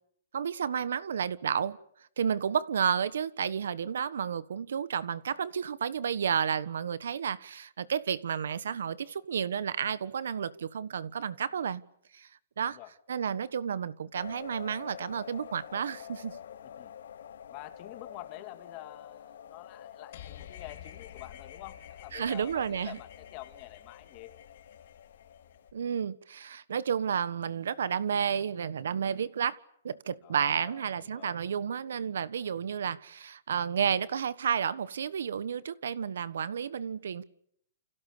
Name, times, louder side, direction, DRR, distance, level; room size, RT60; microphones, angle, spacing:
voice 1, 0.3-1.8 2.2-11.8 12.1-12.3 12.6-12.8 13.1-16.4 22.1-23.0 25.7-29.6 29.8-37.2, right 7 dB, 80° right, 18 dB, 1.3 m, -31 dB
sound 1, 14.1-25.7, left 9 dB, 75° left, 2.3 m, -48 dB
voice 2, 17.5-24.3 30.2-31.4, left 17 dB, 35° left, 8 dB, 2.6 m, -47 dB
sound 2, 20.1-25.7, left 10 dB, 55° left, 4.5 m, -51 dB
29.0 x 27.0 x 6.8 m, 0.71 s
hypercardioid pair, 150°, 0 cm